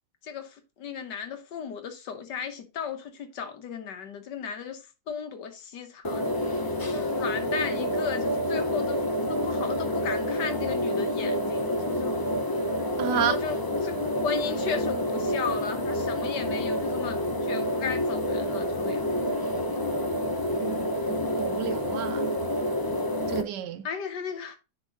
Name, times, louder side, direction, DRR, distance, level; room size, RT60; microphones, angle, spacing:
voice 1, 0.2-12.2 13.1-19.2 23.8-24.6, left 6 dB, 90° left, 1.7 m, -35 dB
sound 1, 6.0-23.4, left 1 dB, 35° left, 0.3 m, -28 dB
voice 2, 13.0-13.4 20.6-20.8 21.4-22.4 23.3-23.9, right 9 dB, 90° right, 1.4 m, -30 dB
10.0 x 4.0 x 3.9 m
omnidirectional pair, 1.8 m